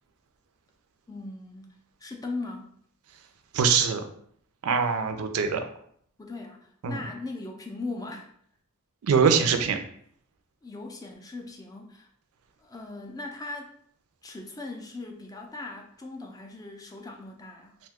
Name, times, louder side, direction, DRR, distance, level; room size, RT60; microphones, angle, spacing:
voice 1, 1.1-2.7 6.2-8.3 10.6-12.1 12.6-13.8 14.2-17.8, left 2 dB, 15° left, 2 dB, 0.3 m, -39 dB
voice 2, 3.5-4.0 4.6-5.6 6.8-7.0 9.0-9.8, right 6 dB, 70° right, 6 dB, 0.4 m, -23 dB
2.6 x 2.2 x 3.5 m, 0.64 s
head